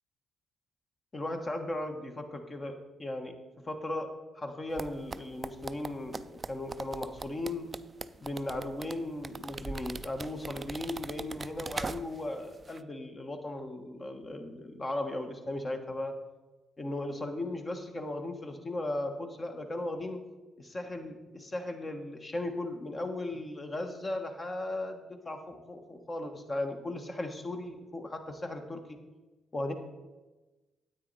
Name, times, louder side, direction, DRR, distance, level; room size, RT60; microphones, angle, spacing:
voice 1, 1.1-3.4 3.7-4.1 4.3-7.7 8.2-16.2 16.8-20.2 20.6-29.0 29.5-29.7, left 1 dB, 30° left, 5 dB, 1.3 m, -37 dB
sound 1, 4.8-12.3 12.6-12.8, right 4 dB, 30° right, 0.4 m, -40 dB
9.5 x 8.2 x 4.1 m, 1.2 s
supercardioid pair, 65°, 0 cm